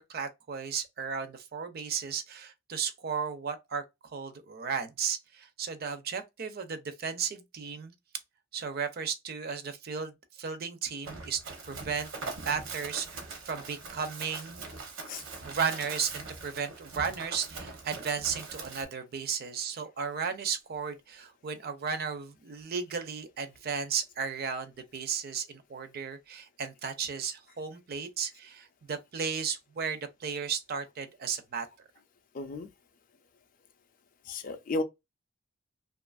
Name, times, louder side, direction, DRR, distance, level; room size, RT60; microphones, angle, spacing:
voice 1, 0.0-7.9 8.5-11.4 11.7-12.1 12.4-14.6 15.4-31.7, right 6 dB, 50° right, 0.4 m, -35 dB
Run, 11.0-18.9, right 4 dB, 80° right, 0.8 m, -42 dB
voice 2, 32.3-32.7 34.3-34.8, left 2 dB, 45° left, 0.4 m, -33 dB
2.6 x 2.4 x 2.3 m
head